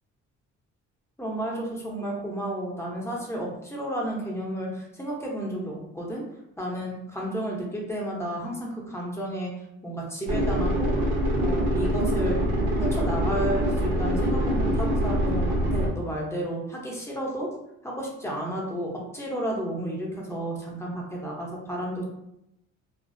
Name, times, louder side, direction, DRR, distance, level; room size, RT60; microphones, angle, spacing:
voice 1, 1.2-6.2 6.6-9.5 9.8-10.9 11.4-12.4 12.8-15.4 15.7-17.5 17.8-22.0, right 1 dB, 10° left, -3 dB, 0.7 m, -32 dB
sound 1, 10.3-15.9, right 1 dB, 90° right, 0.7 m, -24 dB
2.5 x 2.0 x 2.5 m, 0.83 s
cardioid pair, 90°, 30 cm